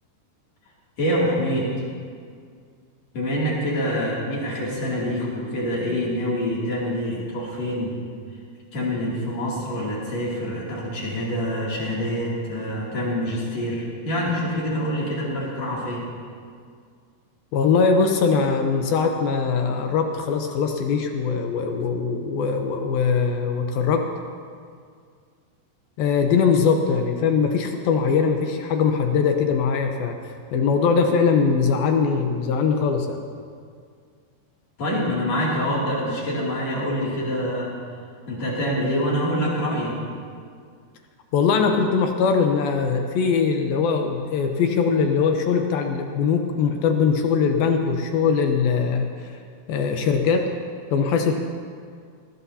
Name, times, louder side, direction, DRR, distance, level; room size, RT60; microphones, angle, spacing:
voice 1, 1.0-1.7 3.1-8.0 8.7-16.0 34.8-37.7 38.3-40.0, equal, 45° left, -5 dB, 3.6 m, -26 dB
voice 2, 17.5-24.0 26.0-33.2 41.3-49.3 49.7-50.5 50.9-51.4, left 5 dB, 75° left, 4 dB, 2.4 m, -21 dB
20.5 x 18.0 x 2.8 m, 2.1 s
omnidirectional pair, 4.8 m